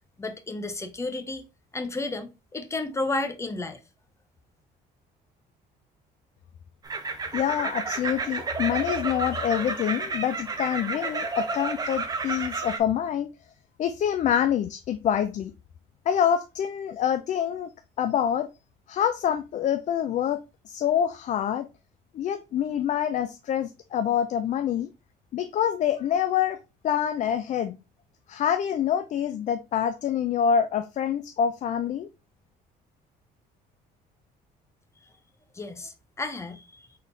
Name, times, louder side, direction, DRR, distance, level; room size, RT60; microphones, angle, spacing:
voice 1, 0.2-1.4 1.7-3.8 35.5-36.9, left 2 dB, 15° left, 0.7 m, -32 dB
sound 1, 6.8-12.8, right 4 dB, 20° right, 0.7 m, -31 dB
voice 2, 7.3-13.3 13.8-15.5 16.1-17.7 18.0-18.5 18.9-20.4 20.7-21.7 22.1-24.9 25.3-26.6 26.8-27.8 28.3-32.1, left 9 dB, 45° left, 0.4 m, -26 dB
4.2 x 3.7 x 2.6 m
cardioid pair, 110°, 17 cm